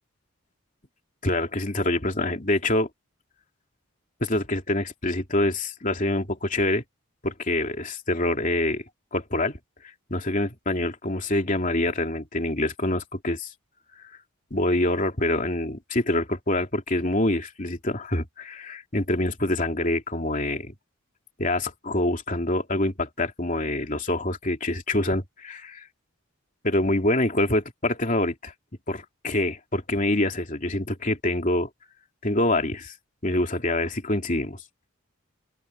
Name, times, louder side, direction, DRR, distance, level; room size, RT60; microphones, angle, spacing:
voice 1, 1.2-2.9 4.2-6.8 7.2-8.8 9.1-9.6 10.1-13.5 14.5-20.7 21.4-25.9 26.6-28.5 28.9-31.7 32.2-32.9 33.2-34.6, left 1 dB, 35° left, 3.1 m, -25 dB
open air
head